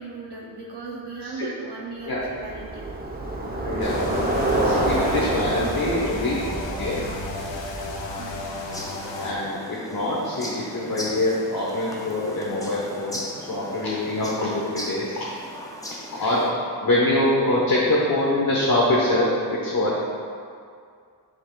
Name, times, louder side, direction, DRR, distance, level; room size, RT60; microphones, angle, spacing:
voice 1, 0.0-2.8 6.7-6.8 8.1-8.4, right 4 dB, 65° right, -3 dB, 0.8 m, -37 dB
Bicycle, 2.2-8.7, right 1 dB, 20° right, 0.8 m, -27 dB
voice 2, 3.6-4.1 4.6-6.4 6.8-7.0 9.2-9.6 9.9-15.2 16.1-16.4 16.8-20.0, left 1 dB, 50° left, -5 dB, 1.1 m, -24 dB
sound 1, 3.8-9.3, left 2 dB, 85° left, 1.0 m, -34 dB
sound 2, 8.7-16.5, left 1 dB, 10° left, 0.6 m, -38 dB
10.5 x 5.7 x 2.3 m, 2.3 s
wide cardioid pair, 120°, 43 cm